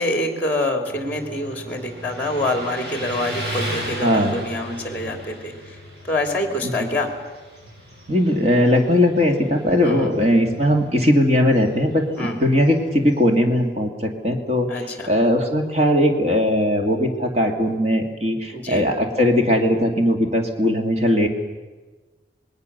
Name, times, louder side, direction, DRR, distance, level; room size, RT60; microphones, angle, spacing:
voice 1, 0.0-5.5 6.1-7.1 9.8-10.1 12.2-12.4 14.7-15.1 18.5-18.8, left 1 dB, 10° left, 5 dB, 2.7 m, -26 dB
Motorcycle, 0.8-13.5, right 1 dB, 65° right, 7.5 m, -36 dB
voice 2, 4.0-4.3 6.6-6.9 8.1-21.3, left 1 dB, 35° right, 3 dB, 2.4 m, -19 dB
27.0 x 20.5 x 6.7 m, 1.3 s
head